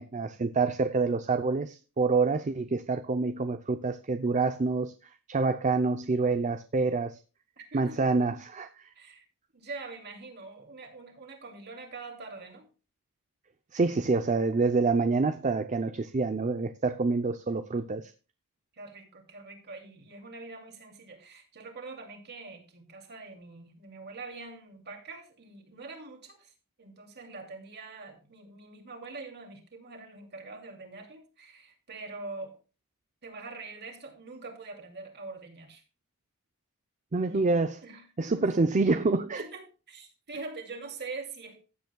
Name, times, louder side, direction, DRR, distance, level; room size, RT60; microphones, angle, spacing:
voice 1, 0.0-4.9 5.3-7.2 7.7-8.7 13.7-18.1 37.1-37.8 38.2-39.4, right 3 dB, 35° right, 0.6 m, -27 dB
voice 2, 7.6-8.0 8.9-9.2 9.5-12.7 18.7-26.5 26.8-32.6 33.2-35.8 37.2-37.5 37.8-38.5 39.3-41.6, right 3 dB, 50° right, 2.6 m, -44 dB
15.5 x 8.2 x 2.3 m
head